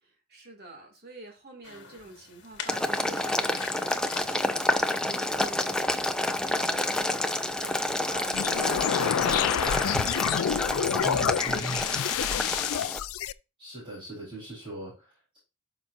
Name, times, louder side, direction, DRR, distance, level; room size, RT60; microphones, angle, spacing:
voice 1, 0.0-5.8 6.4-9.9 10.2-12.8, right 1 dB, 45° right, 2.4 m, -47 dB
sound 1, 1.6-8.7, left 6 dB, 55° left, 1.6 m, -47 dB
Boiling, 2.7-13.0, left 1 dB, 5° left, 0.5 m, -29 dB
sound 2, 8.3-13.3, left 9 dB, 70° left, 0.4 m, -28 dB
voice 2, 11.0-11.8 13.6-15.4, right 2 dB, 25° right, 4.1 m, -39 dB
12.0 x 5.9 x 2.6 m
head